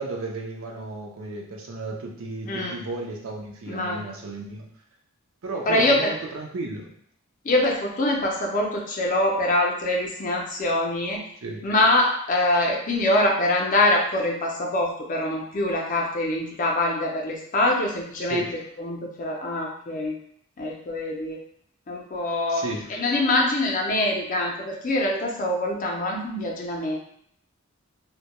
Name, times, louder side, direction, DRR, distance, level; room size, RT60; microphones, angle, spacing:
voice 1, 0.0-4.7 5.4-7.0 11.4-11.7 18.2-18.6 22.5-22.9, right 2 dB, 70° right, 0 dB, 0.5 m, -34 dB
voice 2, 3.7-4.0 5.7-6.1 7.4-11.2 11.6-18.4 18.8-20.2 20.6-21.4 21.9-22.6 22.9-27.0, left 1 dB, 40° left, 0 dB, 0.4 m, -24 dB
2.1 x 2.1 x 2.8 m, 0.67 s
head